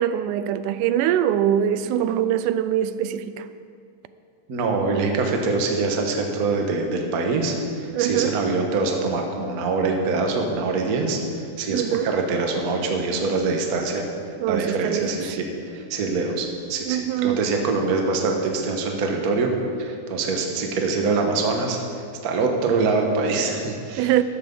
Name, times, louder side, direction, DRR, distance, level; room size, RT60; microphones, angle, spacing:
voice 1, 0.0-3.5 7.9-8.4 11.7-12.1 14.4-15.1 16.9-17.4 24.0-24.2, right 10 dB, 90° right, 2.1 m, -23 dB
voice 2, 4.5-11.2 11.6-14.0 14.5-15.5 15.7-19.5 19.8-21.8 22.2-24.1, right 3 dB, 55° right, 1.0 m, -24 dB
14.0 x 12.0 x 3.8 m
omnidirectional pair, 3.5 m